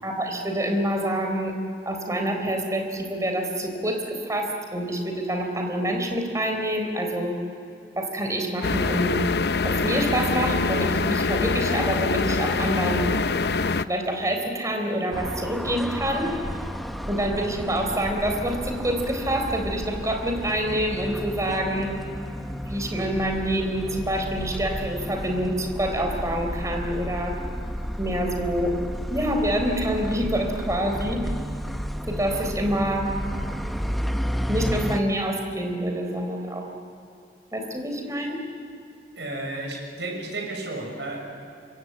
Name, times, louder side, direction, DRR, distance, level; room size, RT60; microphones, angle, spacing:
voice 1, 0.0-1.5 1.9-7.3 8.0-9.1 9.6-13.0 13.9-16.3 17.1-21.9 22.7-27.3 28.0-28.7 29.1-31.2 32.1-33.1 34.5-36.6 37.5-38.4, right 1 dB, 20° right, 3 dB, 3.9 m, -26 dB
sound 1, 8.6-13.8, left 4 dB, 65° left, 0.7 m, -24 dB
sound 2, 15.1-35.0, equal, ahead, 0.7 m, -32 dB
voice 2, 39.2-41.3, right 2 dB, 85° right, 2 dB, 6.6 m, -32 dB
26.5 x 23.0 x 8.8 m, 2.6 s
head